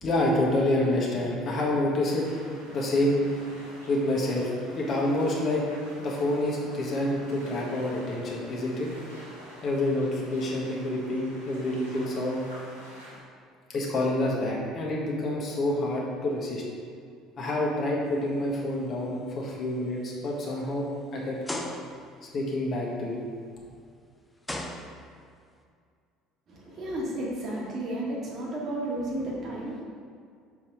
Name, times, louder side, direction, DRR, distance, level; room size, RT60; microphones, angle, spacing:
voice 1, 0.0-3.2 3.9-4.5 4.7-5.6 6.0-8.9 9.6-12.4 13.7-16.6 17.4-21.4 22.3-23.2, left 1 dB, 40° left, -3 dB, 1.5 m, -27 dB
sound 1, 2.0-13.2, equal, 90° right, 1.5 m, -48 dB
sound 2, 18.3-18.6 19.1-19.3 20.0-20.1 21.4-22.2 23.7-23.8 24.4-25.4, left 1 dB, 10° left, 0.8 m, -36 dB
voice 2, 26.5-29.8, right 1 dB, 40° right, -4 dB, 1.7 m, -32 dB
5.9 x 4.6 x 5.0 m, 2.2 s
figure-of-eight pair, 60°, 0 cm